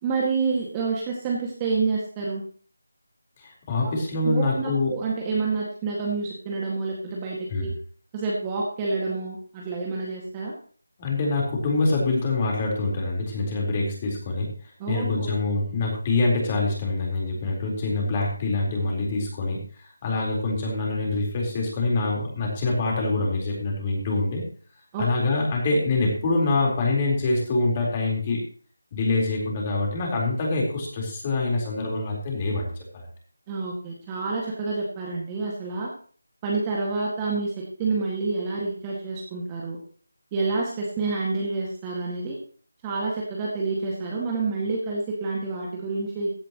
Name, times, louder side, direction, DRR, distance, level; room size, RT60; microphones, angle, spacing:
voice 1, 0.0-2.4 3.8-3.9 4.2-7.7 8.1-10.5 14.8-15.3 24.9-25.1 33.5-35.9 36.4-39.8 40.3-42.4 42.8-46.3, right 4 dB, 15° right, -3 dB, 2.0 m, -28 dB
voice 2, 3.4-4.9 7.5-7.7 11.0-14.5 14.9-24.4 25.0-28.4 28.9-33.1, left 2 dB, 25° left, -1 dB, 4.2 m, -25 dB
15.5 x 10.5 x 3.1 m, 0.43 s
figure-of-eight pair, 165°, 0 cm